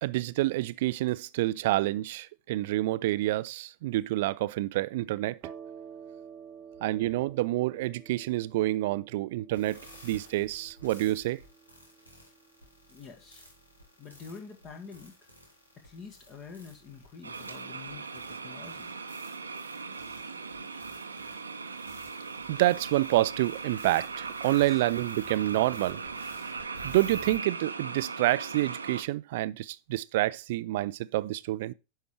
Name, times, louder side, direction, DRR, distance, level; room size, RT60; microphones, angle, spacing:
voice 1, 0.0-5.4 6.8-11.4 22.5-26.1 26.8-31.7, right 16 dB, 50° right, 0.4 m, -28 dB
sound 1, 5.4-12.9, right 8 dB, 35° right, 1.1 m, -50 dB
sound 2, 9.5-27.4, equal, 80° left, 3.4 m, -53 dB
voice 2, 12.9-13.5 14.0-15.1 15.8-18.9 24.6-24.8, left 5 dB, 30° left, 1.8 m, -47 dB
sound 3, 17.2-29.0, right 4 dB, 75° right, 0.8 m, -39 dB
10.5 x 4.5 x 4.9 m
figure-of-eight pair, 90°, 0 cm